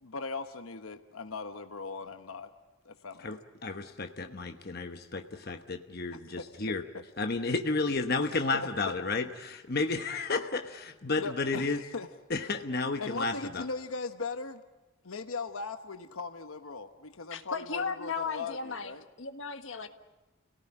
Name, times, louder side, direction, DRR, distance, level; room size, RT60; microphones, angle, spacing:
voice 1, 0.0-2.5 2.8-3.3 6.1-7.0 8.5-9.0 11.2-12.1 13.0-14.6 15.0-19.0, left 4 dB, 85° left, 8 dB, 1.0 m, -39 dB
voice 2, 3.6-6.8 7.2-11.8 12.3-13.6, left 3 dB, 50° left, 6 dB, 1.1 m, -32 dB
voice 3, 17.3-18.9 19.2-19.9, left 5 dB, 65° left, 7 dB, 1.6 m, -35 dB
29.5 x 18.0 x 10.0 m, 1.2 s
head